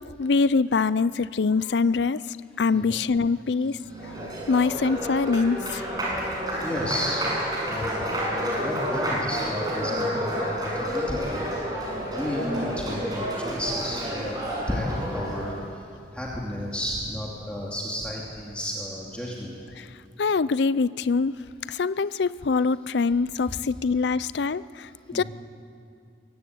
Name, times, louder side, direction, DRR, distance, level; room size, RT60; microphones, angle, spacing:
voice 1, 0.0-2.2 2.6-3.8 4.5-5.9 19.8-19.9 20.2-21.4 21.7-25.2, left 4 dB, 70° left, 17 dB, 0.5 m, -24 dB
voice 2, 2.7-3.0 4.0-4.4 6.6-7.2 7.6-8.2 8.6-11.5 12.1-15.8 16.1-19.5 25.1-25.2, equal, 5° left, -4 dB, 2.6 m, -32 dB
Applause, 3.7-15.6, equal, 25° right, 6.6 m, -30 dB
23.0 x 16.5 x 9.4 m, 2.4 s
head